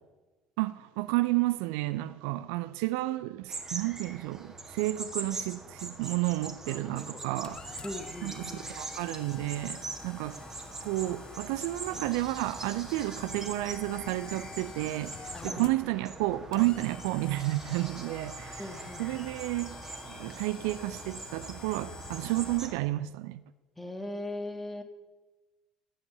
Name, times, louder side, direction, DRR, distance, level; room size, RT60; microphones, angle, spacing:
voice 1, 0.6-7.8 8.2-10.4 10.8-18.7 19.0-19.8 20.1-23.4, right 18 dB, 65° right, 0.4 m, -31 dB
sound 1, 3.5-22.8, right 3 dB, 20° right, 1.8 m, -43 dB
sound 2, 6.6-22.6, left 6 dB, 35° left, 0.6 m, -47 dB
voice 2, 7.8-8.7 15.3-15.8 18.6-19.2 23.8-24.8, left 1 dB, 5° left, 1.7 m, -39 dB
12.5 x 7.9 x 6.6 m
figure-of-eight pair, 60°, 2 cm